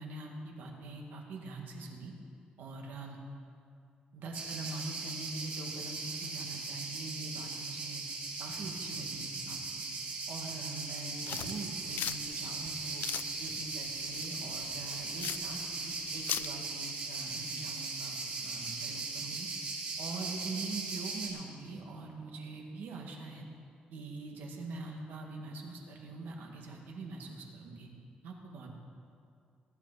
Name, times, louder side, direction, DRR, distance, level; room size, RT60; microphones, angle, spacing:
voice 1, 0.0-2.1 2.6-3.2 4.1-8.0 8.4-9.8 10.3-13.0 13.4-19.5 20.0-23.4 23.9-27.9 28.2-28.7, right 3 dB, 90° right, 1 dB, 2.0 m, -43 dB
sound 1, 4.3-21.3, right 3 dB, 50° right, 3.5 m, -39 dB
sound 2, 11.3-16.5, left 11 dB, 80° left, 0.3 m, -40 dB
19.5 x 11.0 x 4.2 m, 2.4 s
cardioid pair, 165°, 3 cm